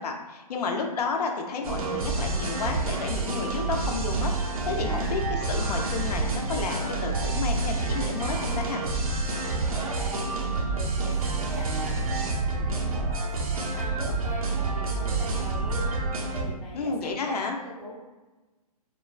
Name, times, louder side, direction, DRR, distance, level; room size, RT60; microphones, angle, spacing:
voice 1, 0.0-8.9 16.7-17.6, left 4 dB, 80° left, 3 dB, 0.5 m, -31 dB
sound 1, 1.6-16.4, right 3 dB, 65° right, 0.6 m, -28 dB
voice 2, 9.4-18.0, equal, 5° left, -10 dB, 0.4 m, -41 dB
2.9 x 2.1 x 2.3 m, 1.2 s
hypercardioid pair, 165°, 20 cm